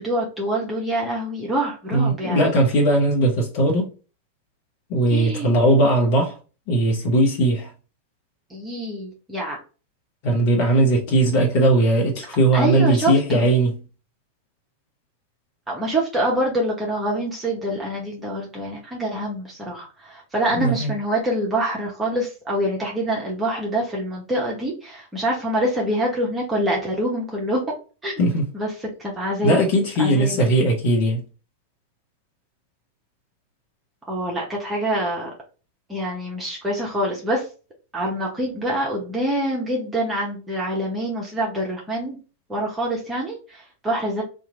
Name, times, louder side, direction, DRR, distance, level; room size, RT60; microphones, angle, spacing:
voice 1, 0.0-2.4 5.1-5.5 8.5-9.6 12.5-13.4 15.7-27.7 28.0-28.1 28.5-28.7 29.0-29.6 30.0-30.4 34.1-35.3 35.9-37.4 37.9-42.2 42.5-44.2, right 1 dB, 10° right, 1.0 m, -25 dB
voice 2, 1.9-3.9 4.9-6.4 6.7-7.7 10.2-13.8 20.6-20.9 28.2-28.4 29.4-31.2, right 1 dB, 45° left, 1.0 m, -19 dB
2.9 x 2.5 x 3.8 m
figure-of-eight pair, 95°, 0 cm